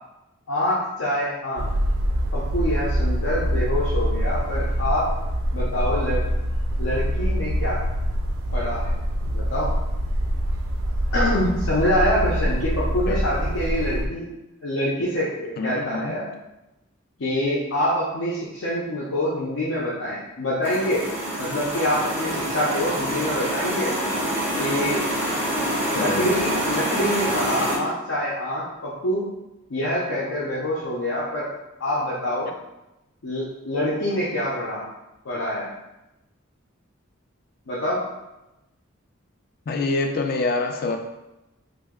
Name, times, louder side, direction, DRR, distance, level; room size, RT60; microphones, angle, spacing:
voice 1, 0.5-1.7 2.3-5.1 5.5-6.2 6.8-7.8 8.5-9.0 9.3-9.7 11.1-14.3 14.6-16.3 17.2-21.0 21.4-23.9 24.6-25.0 25.5-29.3 29.7-31.5 31.8-32.5 33.2-34.9 35.2-35.7 37.7-38.0, left 1 dB, 80° left, -7 dB, 0.6 m, -25 dB
sound 1, 1.6-14.1, equal, 85° right, 0.4 m, -25 dB
voice 2, 15.6-16.2 26.0-26.3 39.7-41.0, left 3 dB, 45° left, 5 dB, 0.3 m, -26 dB
sound 2, 20.6-27.8, right 1 dB, 10° right, 0.5 m, -26 dB
3.0 x 2.1 x 3.6 m, 0.95 s
head